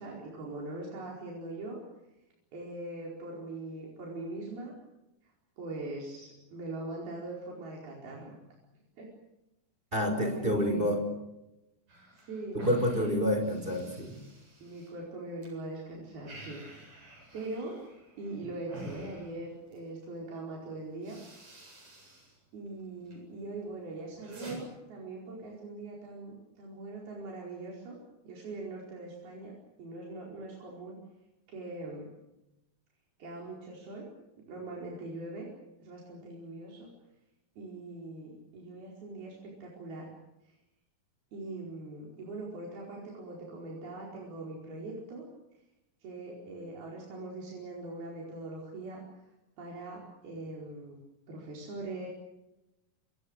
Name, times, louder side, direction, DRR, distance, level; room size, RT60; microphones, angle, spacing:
voice 1, 0.0-1.8 2.5-4.7 5.6-8.4 9.0-9.1 10.2-10.9 12.1-12.6 14.6-16.6 17.3-17.8 18.2-21.2 22.5-28.0 28.2-29.5 29.8-31.0 31.5-32.1 33.2-34.1 34.5-35.5 35.8-36.9 37.6-40.1 40.4-40.6 41.3-45.3 46.0-49.0 49.6-51.0 51.3-52.1, right 2 dB, 85° right, -2 dB, 6.7 m, -41 dB
voice 2, 9.9-11.0 12.5-14.1, equal, 15° right, 5 dB, 5.3 m, -28 dB
sound 1, 11.9-15.5 15.8-19.9 20.5-20.6 20.9-22.4 22.7-23.2 23.6-24.6, right 1 dB, 50° right, 9.2 m, -49 dB
27.0 x 25.5 x 6.6 m, 0.94 s
omnidirectional pair, 4.2 m